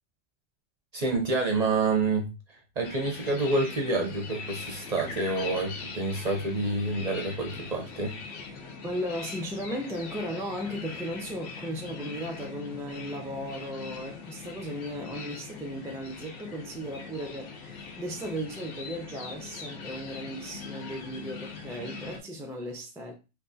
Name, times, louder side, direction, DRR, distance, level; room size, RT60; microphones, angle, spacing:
voice 1, 0.9-8.1, right 3 dB, 40° right, 0.6 m, -28 dB
sound 1, 2.8-22.2, left 4 dB, 80° left, 1.0 m, -41 dB
voice 2, 8.8-23.1, equal, 5° right, 0.4 m, -36 dB
3.6 x 2.8 x 2.6 m
omnidirectional pair, 1.2 m